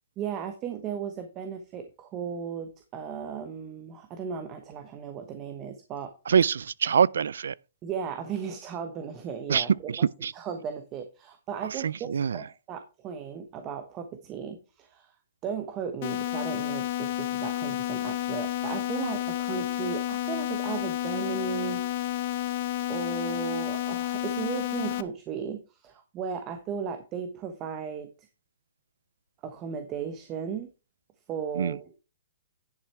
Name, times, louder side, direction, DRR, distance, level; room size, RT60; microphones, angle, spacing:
voice 1, 0.2-6.2 7.8-9.9 10.3-12.1 12.3-15.1 15.4-21.8 22.9-28.1 29.4-30.7 31.3-31.9, right 7 dB, 25° right, 1.1 m, -36 dB
voice 2, 6.3-7.5 9.5-10.3 11.7-12.4 31.6-31.8, right 7 dB, 85° right, 0.4 m, -25 dB
sound 1, 16.0-25.0, left 14 dB, 45° left, 0.8 m, -31 dB
10.5 x 6.1 x 4.5 m
hypercardioid pair, 155°, 0 cm